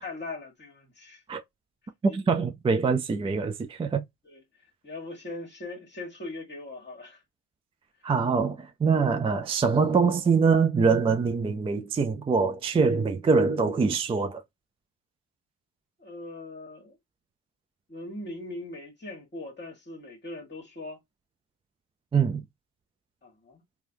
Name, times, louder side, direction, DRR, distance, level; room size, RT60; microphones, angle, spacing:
voice 1, 0.0-1.2 2.1-2.2 4.2-4.4 4.8-7.2 16.0-17.0 17.9-21.0 23.2-23.6, left 2 dB, 25° left, 1.4 m, -40 dB
voice 2, 2.0-4.0 8.0-14.4 22.1-22.4, right 5 dB, 15° right, 0.3 m, -24 dB
3.1 x 2.4 x 2.6 m
hypercardioid pair, 60°, 43 cm